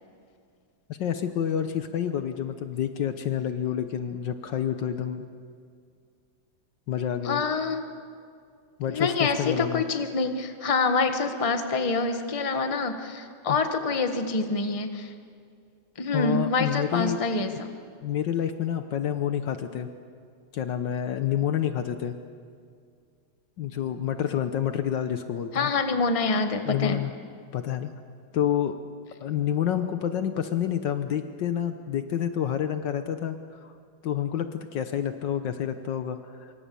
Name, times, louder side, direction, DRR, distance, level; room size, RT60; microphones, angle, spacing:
voice 1, 0.9-5.2 6.9-7.4 8.8-9.8 13.5-13.6 16.1-17.2 18.0-19.9 20.5-22.1 23.6-25.7 26.7-27.1 27.5-27.9 28.3-28.7 29.2-33.4 33.6-33.7 34.0-36.5, left 9 dB, 70° left, 8 dB, 1.6 m, -28 dB
voice 2, 7.2-7.8 8.9-15.1 16.0-17.7 25.5-27.0, left 4 dB, 20° left, 6 dB, 1.2 m, -26 dB
26.5 x 24.0 x 6.9 m, 2.2 s
omnidirectional pair, 2.1 m